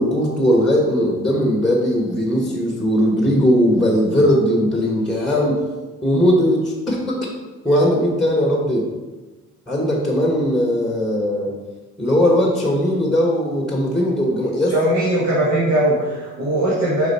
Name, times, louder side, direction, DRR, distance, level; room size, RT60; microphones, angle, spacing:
voice 1, 0.0-5.6 6.0-7.3 7.6-8.9 9.7-11.5 12.0-14.7, equal, ahead, -1 dB, 1.2 m, -18 dB
voice 2, 14.7-17.1, right 1 dB, 60° right, -6 dB, 1.7 m, -19 dB
5.1 x 4.9 x 4.1 m, 1.2 s
cardioid pair, 90°, 31 cm